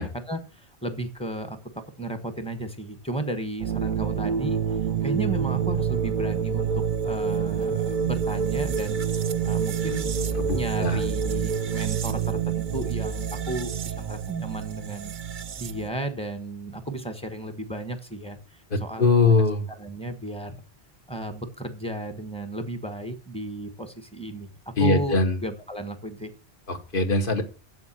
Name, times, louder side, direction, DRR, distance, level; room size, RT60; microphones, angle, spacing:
voice 1, 0.0-1.6 2.0-4.6 5.0-6.7 7.0-9.0 9.4-10.1 10.5-15.1 15.6-19.4 19.8-20.6 21.1-24.5 24.8-26.3, right 1 dB, 5° left, 8 dB, 1.1 m, -34 dB
sound 1, 3.6-15.9, right 7 dB, 55° right, 0.7 m, -27 dB
voice 2, 10.4-11.0 18.7-19.7 24.8-25.3 26.7-27.4, left 3 dB, 55° left, 4 dB, 1.4 m, -22 dB
7.8 x 7.2 x 7.4 m, 0.38 s
omnidirectional pair, 1.1 m